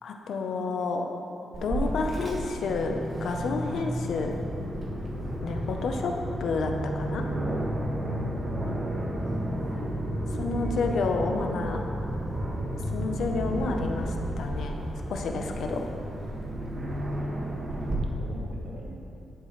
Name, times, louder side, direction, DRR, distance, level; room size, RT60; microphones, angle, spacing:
voice 1, 0.0-1.1 1.6-4.3 5.4-6.1 6.4-7.2 10.3-11.8 12.9-14.8 15.1-15.9, left 3 dB, 75° left, 3 dB, 0.9 m, -30 dB
Aircraft, 1.5-17.9, right 1 dB, 40° right, 1.8 m, -33 dB
sound 1, 4.2-18.3, equal, ahead, 2.1 m, -38 dB
voice 2, 8.0-8.8 15.5-16.3 18.0-19.0, right 1 dB, 80° right, -4 dB, 2.2 m, -43 dB
12.0 x 7.6 x 3.3 m, 2.9 s
cardioid pair, 70°, 0 cm